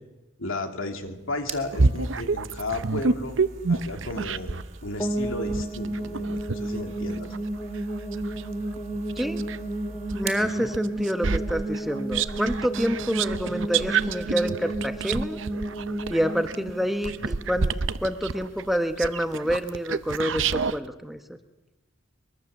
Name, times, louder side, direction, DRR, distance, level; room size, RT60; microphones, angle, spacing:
voice 1, 0.4-3.4 3.7-4.5 4.8-7.3 10.4-10.7, left 2 dB, 75° left, 4 dB, 2.8 m, -34 dB
sound 1, 0.9-10.5, right 3 dB, 35° right, 2.5 m, -42 dB
sound 2, 1.7-4.7 5.2-9.6 10.1-20.8, right 4 dB, 65° right, 0.8 m, -29 dB
sound 3, 5.0-17.9, right 1 dB, 15° left, 2.0 m, -32 dB
voice 2, 9.2-9.5 9.9-15.4 16.1-21.4, equal, ahead, 7 dB, 1.0 m, -28 dB
23.0 x 23.0 x 7.1 m, 1.1 s
head